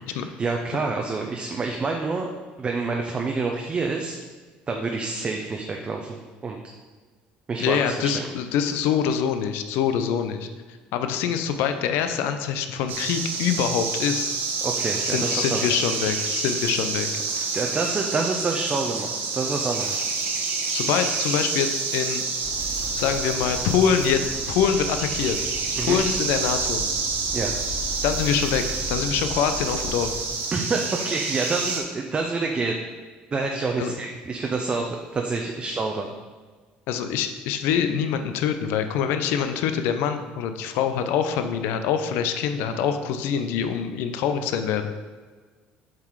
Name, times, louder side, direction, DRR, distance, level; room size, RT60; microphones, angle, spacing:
voice 1, 0.1-2.3 2.6-4.2 4.7-6.6 7.5-8.3 14.6-15.9 17.5-20.1 25.8-26.0 27.3-27.5 30.5-32.8 33.3-36.1, right 3 dB, 30° right, 2 dB, 0.7 m, -28 dB
voice 2, 7.6-10.5 10.9-14.3 15.1-17.1 20.7-22.3 22.9-25.4 25.8-26.8 28.0-30.1 33.8-33.9 36.9-44.8, left 8 dB, 75° left, 8 dB, 0.6 m, -25 dB
sound 1, 12.9-31.8, right 4 dB, 65° right, 1.2 m, -28 dB
sound 2, 22.4-30.2, equal, 35° left, 2.2 m, -37 dB
7.4 x 4.0 x 4.7 m, 1.4 s
supercardioid pair, 100°, 4 cm